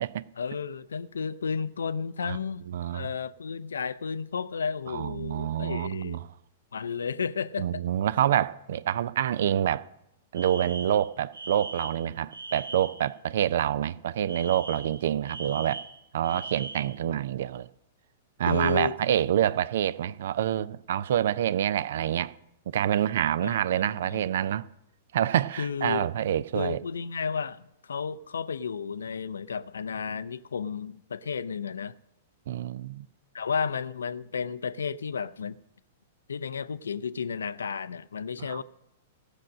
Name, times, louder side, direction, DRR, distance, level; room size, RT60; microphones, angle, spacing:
voice 1, 0.4-2.7 2.9-6.2 6.7-7.8 18.5-18.9 23.4-23.8 24.1-24.2 25.6-26.0 26.5-32.0 33.3-35.6 36.3-38.6, left 6 dB, 70° left, 0.4 m, -32 dB
voice 2, 2.7-3.1 4.9-6.3 7.6-9.9 10.3-15.8 16.1-17.7 18.4-22.3 22.7-24.7 25.1-26.8 32.5-33.1 38.4-38.6, right 10 dB, 55° right, 0.4 m, -27 dB
Alarm, 10.3-13.1 14.3-17.0, right 3 dB, 80° right, 1.1 m, -40 dB
16.0 x 6.4 x 6.4 m
figure-of-eight pair, 105°, 0 cm